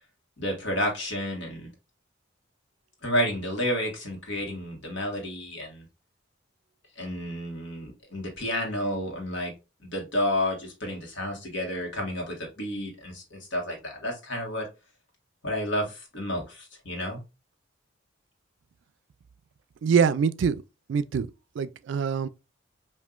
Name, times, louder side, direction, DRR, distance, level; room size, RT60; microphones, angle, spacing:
voice 1, 0.4-1.7 3.0-5.9 6.9-9.5 9.8-14.7 15.4-17.2, left 1 dB, 70° left, 1.5 m, -31 dB
voice 2, 19.8-20.6 20.9-21.3 21.6-22.3, right 6 dB, 70° right, 0.3 m, -24 dB
5.4 x 2.6 x 2.4 m
head